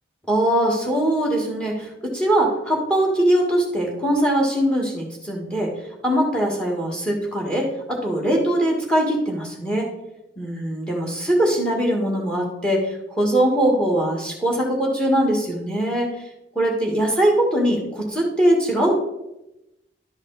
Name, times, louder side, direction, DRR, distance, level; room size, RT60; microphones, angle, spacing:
voice 1, 0.3-5.7 6.0-9.9 10.4-16.1 16.6-18.9, right 1 dB, 5° left, 0 dB, 1.8 m, -21 dB
11.5 x 5.2 x 4.0 m, 0.89 s
head